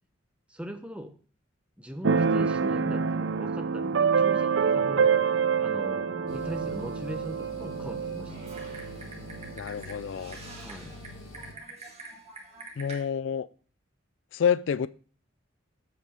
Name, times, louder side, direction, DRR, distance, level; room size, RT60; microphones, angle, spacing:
voice 1, 0.5-1.1 1.8-5.1 5.6-8.3 10.6-10.9, equal, 5° right, 0.9 m, -40 dB
Keyboard (musical), 2.0-9.5, right 6 dB, 65° right, 0.5 m, -26 dB
sound 1, 6.3-11.5, left 1 dB, 85° left, 1.6 m, -45 dB
Typing, 8.2-13.0, right 2 dB, 30° right, 2.0 m, -46 dB
voice 2, 9.6-10.4 12.8-13.5 14.3-14.9, left 7 dB, 65° left, 0.4 m, -28 dB
7.8 x 5.3 x 6.6 m
head